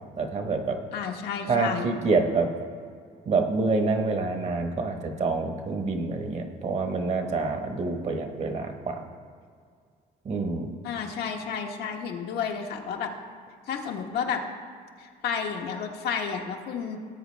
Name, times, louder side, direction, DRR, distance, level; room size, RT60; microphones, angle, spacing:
voice 1, 0.2-0.8 1.5-2.5 3.3-9.1 10.2-10.7, right 3 dB, 40° right, 5 dB, 1.3 m, -27 dB
voice 2, 0.9-1.9 10.8-13.1 13.7-14.4 15.0-17.0, left 6 dB, 70° left, 2 dB, 1.3 m, -31 dB
18.0 x 8.0 x 3.4 m, 2.1 s
cardioid pair, 110°, 17 cm